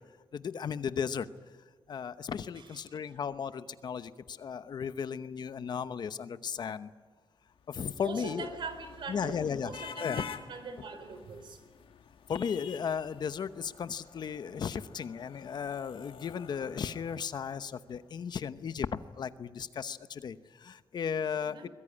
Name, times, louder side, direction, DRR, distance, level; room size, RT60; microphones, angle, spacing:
voice 1, 0.3-1.3 1.9-6.9 7.7-8.5 9.1-9.7 10.0-10.3 12.3-18.9 19.1-21.7, left 7 dB, 55° left, 13 dB, 0.9 m, -35 dB
sound 1, 7.6-17.9, left 7 dB, 80° left, 1.5 m, -49 dB
voice 2, 8.0-11.6 21.4-21.7, right 4 dB, 65° right, 9 dB, 4.0 m, -42 dB
23.0 x 21.5 x 9.8 m, 1.4 s
wide cardioid pair, 165°, 9 cm